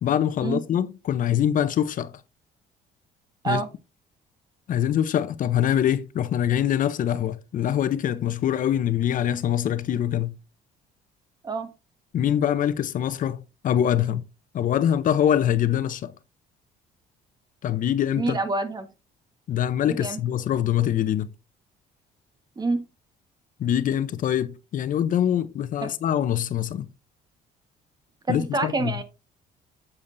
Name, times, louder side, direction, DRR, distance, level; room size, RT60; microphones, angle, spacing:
voice 1, 0.0-2.1 3.4-3.6 4.7-10.3 12.1-14.2 14.5-16.1 17.6-18.4 19.5-21.3 23.6-26.9 28.3-28.9, left 10 dB, 50° left, 0.7 m, -24 dB
voice 2, 18.2-18.9 19.8-20.2 22.6-22.8 25.8-25.9 28.3-29.0, right 3 dB, 25° right, 1.4 m, -27 dB
8.5 x 8.2 x 2.6 m
cardioid pair, 110°, 17 cm